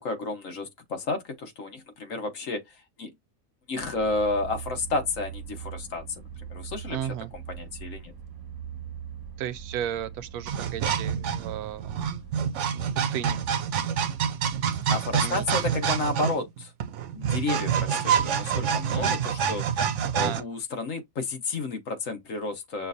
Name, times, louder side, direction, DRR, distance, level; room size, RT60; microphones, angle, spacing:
voice 1, 0.0-3.1 3.7-6.0 6.5-7.1 7.5-8.1 14.9-16.7 17.1-19.9 20.1-22.9, left 3 dB, 60° left, 1.4 m, -31 dB
sound 1, 3.8-12.4, right 8 dB, 20° right, 0.7 m, -41 dB
voice 2, 6.9-7.3 9.4-12.1 12.7-13.4 15.2-15.7 18.9-19.2 20.1-20.5, right 10 dB, 80° right, 1.1 m, -35 dB
sound 2, 10.5-20.4, right 8 dB, 65° right, 0.8 m, -27 dB
6.4 x 2.5 x 2.5 m
omnidirectional pair, 1.6 m